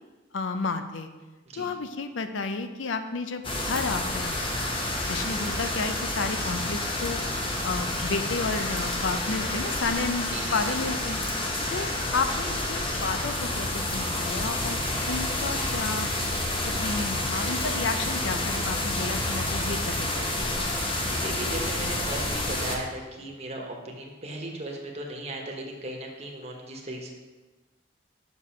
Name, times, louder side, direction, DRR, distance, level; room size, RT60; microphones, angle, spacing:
voice 1, 0.3-1.1 1.6-4.3 5.1-7.2 7.6-11.2 11.7-16.1 16.7-20.7, left 4 dB, 70° left, 8 dB, 0.6 m, -32 dB
sound 1, 3.4-22.8, left 1 dB, 25° left, 1.0 m, -29 dB
voice 2, 10.3-10.8 21.2-27.1, right 1 dB, 35° right, 1 dB, 1.2 m, -37 dB
6.7 x 5.2 x 5.8 m, 1.2 s
head